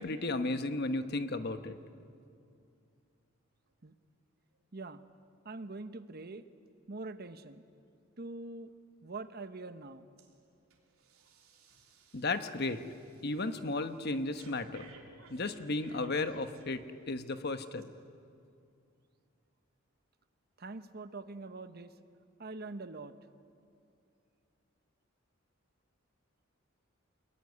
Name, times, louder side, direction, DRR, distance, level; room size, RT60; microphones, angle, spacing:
voice 1, 0.0-1.8 12.1-12.8 13.2-14.9 15.3-17.8, left 2 dB, 50° left, 9 dB, 1.2 m, -34 dB
voice 2, 5.4-6.4 6.9-7.6 8.2-8.7 9.0-10.1 20.6-21.9 22.4-23.2, right 3 dB, 50° right, 11 dB, 1.0 m, -43 dB
Breathing, 10.2-10.4 10.7-17.1 17.7-17.8, right 3 dB, 85° right, 3.4 m, -60 dB
26.0 x 21.5 x 9.7 m, 2.5 s
head